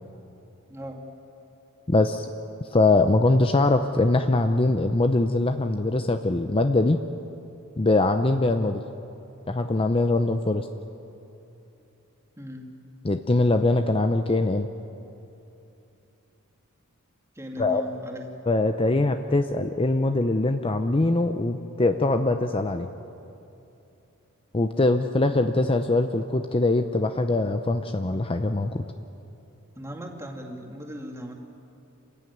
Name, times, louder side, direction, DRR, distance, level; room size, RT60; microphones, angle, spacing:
voice 1, 0.7-1.0 12.4-12.7 17.4-18.2 29.8-31.3, equal, 15° right, 1 dB, 2.4 m, -37 dB
voice 2, 1.9-2.3 2.7-7.0 7.8-8.8 9.5-10.7 13.0-14.7 17.6-17.8 18.5-22.9 24.5-28.8, left 2 dB, 25° left, 7 dB, 0.6 m, -22 dB
27.5 x 15.0 x 9.5 m, 2.9 s
head